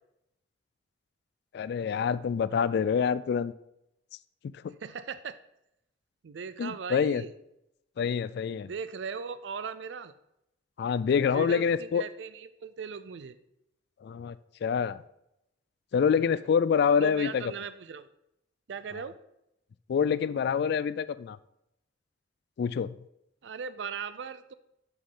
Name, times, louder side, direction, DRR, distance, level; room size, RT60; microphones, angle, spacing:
voice 1, 1.5-3.5 4.4-4.7 6.6-7.2 8.0-8.7 10.8-12.0 14.0-14.4 14.6-15.0 15.9-17.4 19.9-21.4 22.6-23.0, left 6 dB, 60° left, 17 dB, 0.3 m, -26 dB
voice 2, 4.8-5.4 6.2-7.3 8.6-10.1 11.3-13.4 17.0-18.1 18.7-19.1 23.4-24.5, right 6 dB, 70° right, 13 dB, 0.4 m, -38 dB
6.3 x 6.2 x 5.5 m, 0.83 s
head